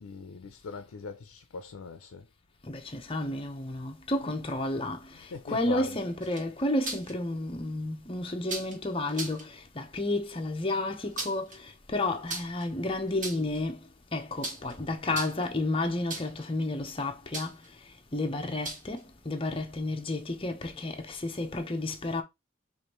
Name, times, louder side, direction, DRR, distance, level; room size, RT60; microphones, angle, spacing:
voice 1, 0.0-2.3 4.2-4.6 5.1-6.1, left 4 dB, 85° left, 0.5 m, -41 dB
voice 2, 2.7-5.0 5.5-11.5 11.9-13.8 14.1-17.5 18.1-19.0 19.3-22.2, left 2 dB, 25° left, 0.7 m, -31 dB
sound 1, 6.2-7.1 8.5-8.8 9.1-9.4 10.9-11.6 12.3-12.7 13.1-13.6 14.4-14.7 15.1-15.5 16.1-16.4 17.3-17.7 18.6-19.0, right 3 dB, 40° right, 1.2 m, -37 dB
4.9 x 2.6 x 3.0 m
head